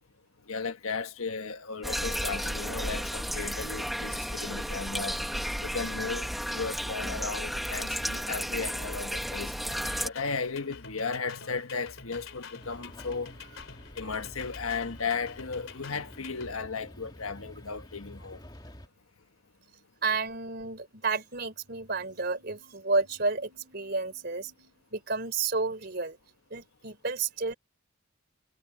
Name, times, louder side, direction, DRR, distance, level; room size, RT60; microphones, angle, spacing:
voice 1, 0.5-5.2 5.6-9.5 10.0-13.3 14.0-18.4, left 5 dB, 90° left, 1.5 m, -35 dB
sound 1, 1.8-10.1, equal, ahead, 1.1 m, -33 dB
sound 2, 9.7-16.5, left 5 dB, 70° left, 3.5 m, -47 dB
sound 3, 12.6-18.9, equal, 20° left, 2.3 m, -49 dB
voice 2, 20.0-26.2 26.5-27.5, right 4 dB, 50° right, 3.8 m, -31 dB
head